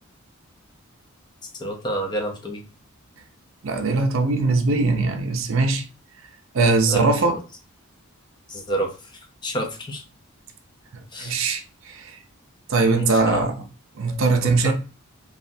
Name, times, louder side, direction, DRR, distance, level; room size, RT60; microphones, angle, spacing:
voice 1, 1.4-2.7 6.9-7.1 8.5-10.0 11.1-11.3 12.9-13.5 14.6-14.7, right 1 dB, 20° left, 0.5 m, -29 dB
voice 2, 3.6-5.8 6.5-7.4 11.2-12.2 12.7-13.5 14.0-14.7, right 3 dB, 60° right, 0.5 m, -21 dB
3.0 x 2.3 x 2.6 m
head